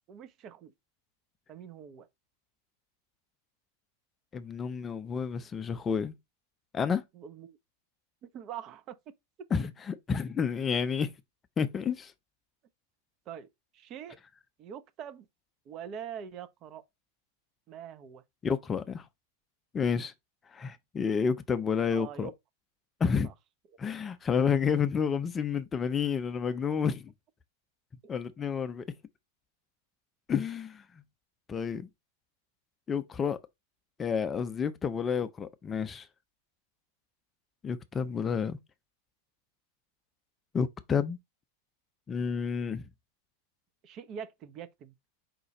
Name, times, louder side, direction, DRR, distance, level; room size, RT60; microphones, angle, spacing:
voice 1, 0.1-0.7 1.5-2.1 7.1-7.6 8.2-9.0 9.4-9.5 13.3-13.5 13.7-14.2 14.6-15.3 15.7-16.8 17.7-18.2 21.9-22.3 23.2-23.3 43.8-44.9, right 8 dB, 35° right, 0.5 m, -43 dB
voice 2, 4.3-6.1 6.7-7.0 9.5-11.1 11.6-12.1 18.4-19.0 19.7-20.1 20.5-22.3 23.0-23.3 23.8-27.1 28.1-28.8 30.3-30.8 31.5-31.9 32.9-33.4 34.0-36.1 37.6-38.6 40.5-41.2 42.1-42.8, left 6 dB, 20° left, 0.5 m, -30 dB
5.1 x 2.3 x 4.1 m
figure-of-eight pair, 90°, 0 cm